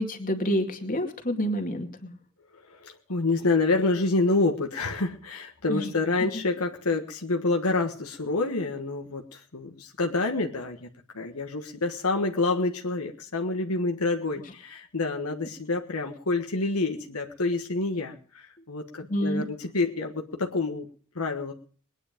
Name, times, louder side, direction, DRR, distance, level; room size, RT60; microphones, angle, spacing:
voice 1, 0.0-2.1 5.7-5.9 19.1-19.4, equal, 40° left, 4 dB, 2.3 m, -28 dB
voice 2, 2.7-10.9 11.1-20.9 21.1-21.5, left 3 dB, 75° left, 3 dB, 1.4 m, -28 dB
21.5 x 9.8 x 5.1 m, 0.43 s
head